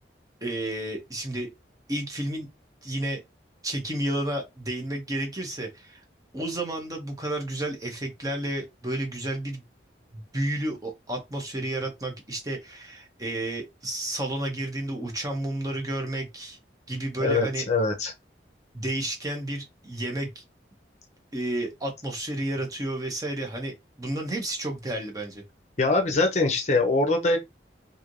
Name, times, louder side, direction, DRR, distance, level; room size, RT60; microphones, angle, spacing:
voice 1, 0.4-1.5 1.9-2.5 2.8-3.2 3.6-6.0 6.3-9.6 10.1-16.6 16.9-17.6 18.7-20.4 21.3-25.4, right 1 dB, 20° right, 0.7 m, -31 dB
voice 2, 17.2-18.1 25.8-27.4, left 3 dB, 40° left, 0.6 m, -23 dB
3.1 x 2.6 x 2.5 m
head